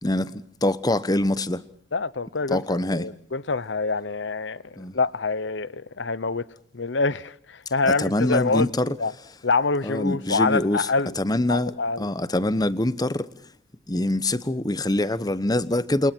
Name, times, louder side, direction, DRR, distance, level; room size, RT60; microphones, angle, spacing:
voice 1, 0.0-1.6 2.5-3.1 4.8-4.9 7.8-8.9 9.8-10.9 11.2-11.7 12.0-13.3 13.9-16.1, left 1 dB, 20° left, 1.0 m, -24 dB
voice 2, 1.9-6.4 6.7-9.1 9.4-11.2 11.5-12.1, left 3 dB, 70° left, 0.9 m, -26 dB
29.0 x 27.5 x 4.5 m
head